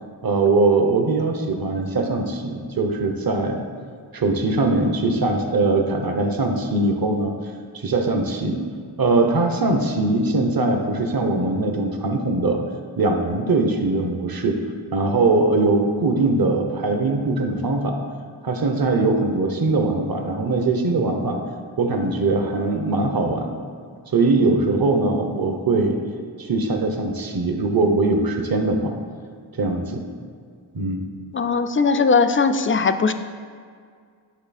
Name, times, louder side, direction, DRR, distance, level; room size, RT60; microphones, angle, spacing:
voice 1, 0.2-3.6 4.1-7.3 7.7-8.6 9.0-12.6 13.0-14.6 14.9-18.0 18.4-21.4 21.8-23.5 24.1-26.0 26.4-28.9 29.5-30.1 30.7-31.0, right 3 dB, 50° right, 4 dB, 0.8 m, -21 dB
voice 2, 31.3-33.1, left 4 dB, 30° left, 9 dB, 0.3 m, -19 dB
9.5 x 3.2 x 4.1 m, 2.1 s
cardioid pair, 45°, 47 cm